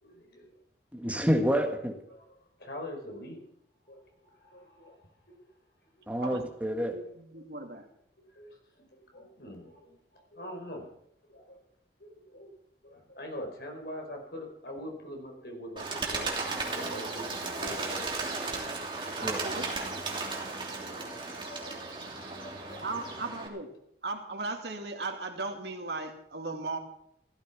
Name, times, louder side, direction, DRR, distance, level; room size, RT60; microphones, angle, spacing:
voice 1, 0.0-0.5 1.0-1.3 2.1-2.3 2.6-3.4 3.8-5.4 8.3-8.9 9.1-10.9 11.3-11.6 12.0-12.5 12.8-18.1 20.3-23.1, left 1 dB, 65° left, 2 dB, 4.8 m, -45 dB
voice 2, 0.9-1.9 6.1-7.0 19.2-19.4, equal, 10° right, 3 dB, 1.8 m, -28 dB
voice 3, 6.9-7.9 19.2-19.9 22.8-23.7 24.0-26.8, right 3 dB, 70° right, 4 dB, 2.5 m, -37 dB
Bird, 15.8-23.5, right 3 dB, 30° right, 3.0 m, -35 dB
15.5 x 14.0 x 6.1 m, 0.71 s
head